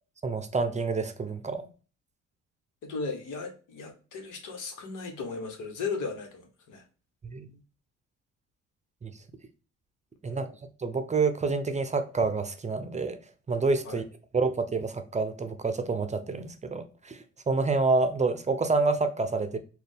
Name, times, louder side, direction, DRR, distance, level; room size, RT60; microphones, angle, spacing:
voice 1, 0.2-1.7 7.2-7.5 9.0-9.1 10.2-10.5 10.8-13.2 13.5-14.0 14.3-17.2 17.5-19.6, right 4 dB, 25° right, 0.5 m, -28 dB
voice 2, 2.8-6.8 10.3-10.5 13.8-14.0, left 4 dB, 90° left, 1.1 m, -36 dB
4.2 x 2.3 x 3.4 m
cardioid pair, 90°, 30 cm